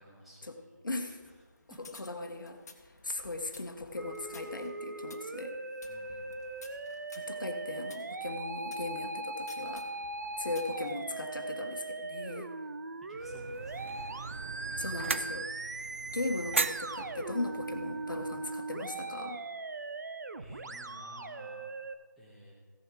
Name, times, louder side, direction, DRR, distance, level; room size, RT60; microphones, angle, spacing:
voice 1, 0.0-1.3 1.7-1.8 5.9-6.4 13.0-14.1 20.4-21.7 22.2-22.5, left 1 dB, ahead, -6 dB, 1.4 m, -54 dB
voice 2, 0.8-1.2 2.0-2.6 3.0-5.5 7.1-9.9 10.4-12.5 14.7-15.9 16.1-19.4, left 2 dB, 75° left, 6 dB, 1.4 m, -38 dB
sound 1, 1.1-8.9 9.5-10.9, left 3 dB, 55° left, 1.5 m, -56 dB
Musical instrument, 4.0-21.9, right 2 dB, 60° right, 0.7 m, -40 dB
sound 2, 13.2-18.6, right 4 dB, 40° right, 0.4 m, -38 dB
16.0 x 6.9 x 4.7 m, 1.5 s
figure-of-eight pair, 160°, 11 cm